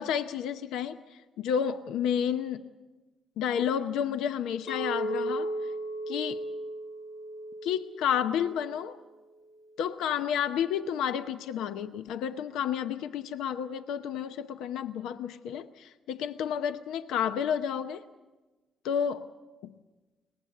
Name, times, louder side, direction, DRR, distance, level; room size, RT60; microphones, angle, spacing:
voice 1, 0.0-2.6 3.4-5.5 6.1-6.4 7.6-9.0 9.8-18.0 18.8-19.3 19.6-19.7, left 8 dB, 85° left, 10 dB, 0.7 m, -31 dB
Chink clink, 4.7-8.9, right 1 dB, 60° left, 2.2 m, -36 dB
22.5 x 19.5 x 8.2 m, 1.2 s
cardioid pair, 90°, 0 cm